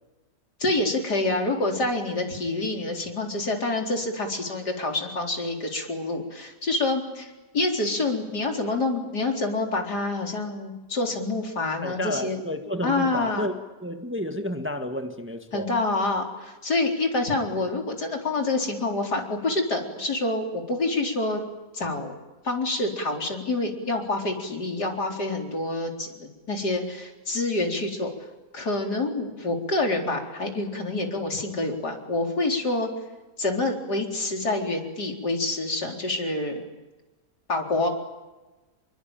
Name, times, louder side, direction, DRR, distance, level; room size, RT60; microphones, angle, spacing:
voice 1, 0.6-12.4 12.8-13.5 15.5-21.4 21.7-22.2 22.4-28.1 28.5-32.9 33.4-36.7 37.5-37.9, left 2 dB, 70° left, 2 dB, 4.8 m, -27 dB
voice 2, 11.8-13.5 13.8-15.7, left 1 dB, 5° right, 6 dB, 1.5 m, -31 dB
28.0 x 23.0 x 9.1 m, 1.1 s
omnidirectional pair, 1.8 m